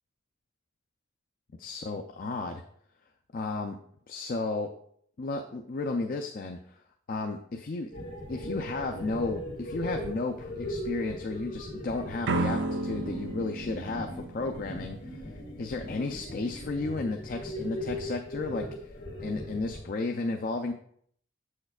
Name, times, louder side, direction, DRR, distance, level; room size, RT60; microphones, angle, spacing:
voice 1, 1.6-2.6 3.3-3.8 4.1-4.7 5.2-6.8 7.1-7.9 8.3-15.2 15.6-20.7, left 3 dB, 45° left, 3 dB, 0.4 m, -33 dB
sound 1, 7.9-19.8, equal, 60° left, 1.9 m, -39 dB
sound 2, 12.2-15.1, right 2 dB, 60° right, 0.4 m, -32 dB
7.7 x 6.4 x 2.4 m, 0.64 s
head